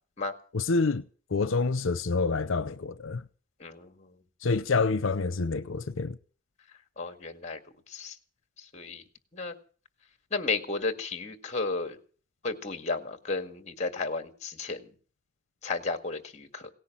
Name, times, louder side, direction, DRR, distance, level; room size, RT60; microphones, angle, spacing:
voice 1, 0.5-1.0 1.3-3.2 4.4-6.2, left 4 dB, 85° left, 0.7 m, -27 dB
voice 2, 3.6-3.9 7.0-7.6 7.9-8.1 8.7-9.0 9.3-9.5 10.3-12.0 12.4-14.8 15.6-16.7, left 3 dB, 35° left, 1.9 m, -33 dB
17.5 x 10.0 x 7.4 m
head